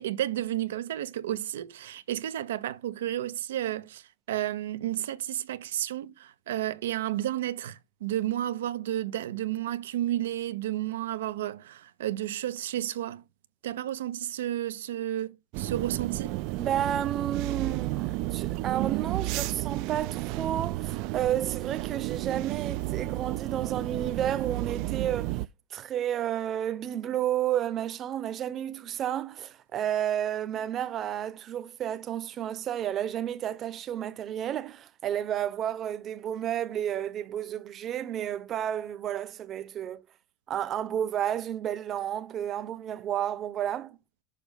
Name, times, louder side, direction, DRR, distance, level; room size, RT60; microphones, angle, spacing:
voice 1, 0.0-13.2 13.6-16.4, right 13 dB, 90° right, 0.7 m, -32 dB
sound 1, 15.5-25.5, right 18 dB, 60° right, 0.4 m, -32 dB
voice 2, 16.6-25.4 25.7-40.0 40.5-44.0, right 10 dB, 35° right, 0.9 m, -31 dB
6.8 x 5.2 x 5.2 m
supercardioid pair, 115°, 0 cm